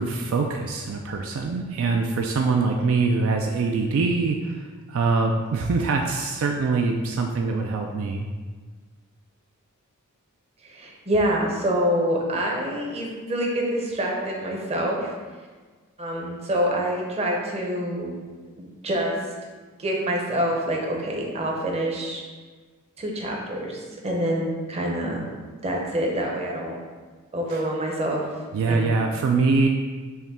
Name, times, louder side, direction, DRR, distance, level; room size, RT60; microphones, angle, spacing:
voice 1, 0.0-8.3 27.5-27.6 28.5-29.7, right 4 dB, 65° right, 2 dB, 0.3 m, -24 dB
voice 2, 10.6-15.1 16.0-18.1 18.6-19.2 19.8-22.2 23.0-25.3 25.6-26.8 27.3-28.3 28.7-29.0, equal, 30° right, -1 dB, 0.7 m, -26 dB
5.7 x 2.2 x 4.2 m, 1.4 s
head